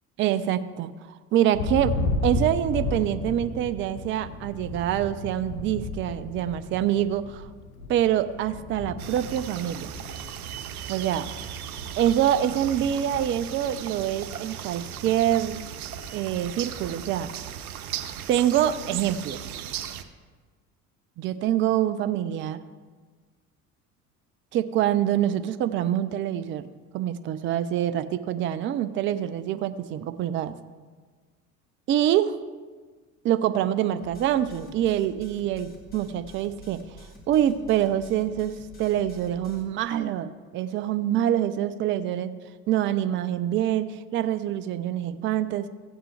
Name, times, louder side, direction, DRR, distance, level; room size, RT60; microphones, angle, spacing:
voice 1, 0.2-2.0 2.2-7.5 7.9-9.9 10.9-11.3 12.0-15.6 16.1-17.3 18.3-19.5 21.2-22.6 24.5-26.7 26.9-30.6 31.9-32.4 33.2-36.8 37.3-42.3 42.7-45.7, right 11 dB, 25° right, 13 dB, 0.5 m, -25 dB
Thunder, 1.5-14.4 14.8-15.3 15.6-17.1, left 2 dB, 70° left, 1.2 m, -34 dB
sound 1, 9.0-20.0, right 10 dB, 70° right, 0.8 m, -37 dB
sound 2, 34.0-39.6, equal, 20° left, 2.7 m, -48 dB
15.0 x 8.9 x 3.3 m, 1.4 s
figure-of-eight pair, 65°, 45 cm